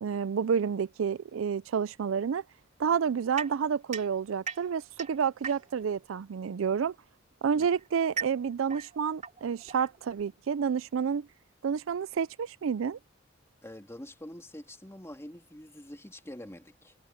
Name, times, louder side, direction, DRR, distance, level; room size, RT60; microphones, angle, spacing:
voice 1, 0.0-2.4 2.8-6.9 7.4-11.3 11.6-13.0, right 6 dB, 80° right, 0.4 m, -29 dB
sound 1, 3.4-6.0 7.0-10.4, right 6 dB, 40° right, 3.1 m, -40 dB
voice 2, 13.6-16.9, left 1 dB, 15° left, 2.6 m, -45 dB
head